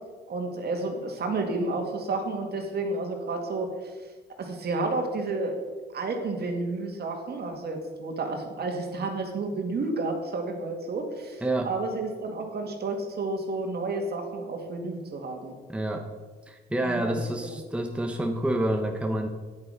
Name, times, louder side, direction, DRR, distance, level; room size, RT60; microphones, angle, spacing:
voice 1, 0.3-3.9 4.4-5.6 5.9-15.5 16.8-17.6, right 3 dB, 55° right, 3 dB, 2.2 m, -31 dB
voice 2, 11.4-11.7 15.7-16.1 16.5-19.3, right 1 dB, 5° right, 4 dB, 0.9 m, -28 dB
9.6 x 8.6 x 5.1 m, 1.4 s
cardioid pair, 90°, 20 cm